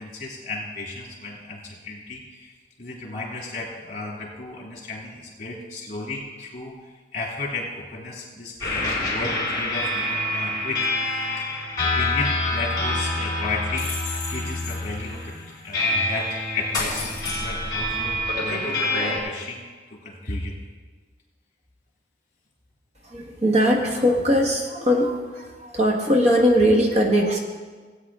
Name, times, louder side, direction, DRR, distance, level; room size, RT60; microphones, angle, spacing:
voice 1, 0.0-6.8 7.1-11.5 11.8-13.9 14.3-19.6 19.9-20.6, left 3 dB, 45° left, -1 dB, 2.7 m, -34 dB
sound 1, 8.6-19.2, left 2 dB, 20° left, 3.8 m, -26 dB
voice 2, 23.0-27.4, equal, 40° right, 1 dB, 1.2 m, -20 dB
17.5 x 8.8 x 3.6 m, 1.4 s
head